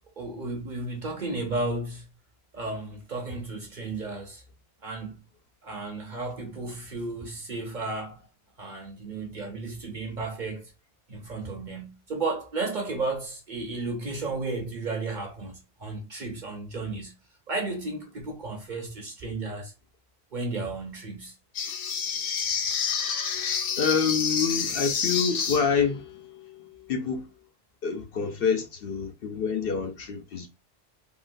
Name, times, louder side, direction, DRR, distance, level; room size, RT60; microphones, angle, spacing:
voice 1, 0.2-2.1 2.5-4.4 4.8-5.2 5.6-8.3 8.6-10.7 11.1-17.1 17.5-19.7 20.3-21.3, right 3 dB, 50° right, 0.7 m, -33 dB
sound 1, 21.5-25.9, left 6 dB, 85° left, 1.0 m, -28 dB
voice 2, 23.8-26.0 26.9-27.3 27.8-30.5, left 6 dB, 60° left, 0.7 m, -27 dB
3.7 x 2.4 x 2.5 m
omnidirectional pair, 1.2 m